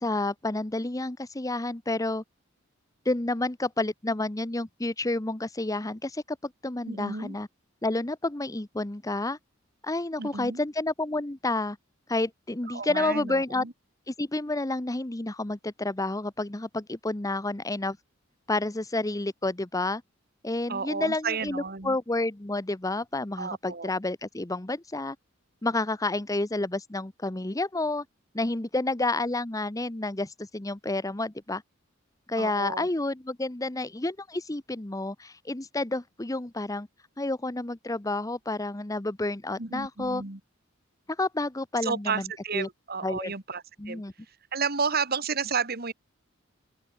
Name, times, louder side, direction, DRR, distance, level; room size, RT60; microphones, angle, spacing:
voice 1, 0.0-2.2 3.0-7.5 7.8-9.4 9.8-11.8 12.1-13.6 14.1-18.0 18.5-20.0 20.4-25.2 25.6-28.0 28.3-31.6 32.3-36.9 37.2-40.2 41.2-42.3 42.5-42.7 43.0-43.3 43.8-44.1, left 2 dB, 15° left, 0.9 m, -30 dB
voice 2, 6.9-7.4 10.2-10.6 12.7-13.7 20.7-22.0 23.4-24.0 32.4-32.9 39.6-40.4 41.8-44.0 44.5-45.9, right 5 dB, 50° right, 2.2 m, -32 dB
open air
head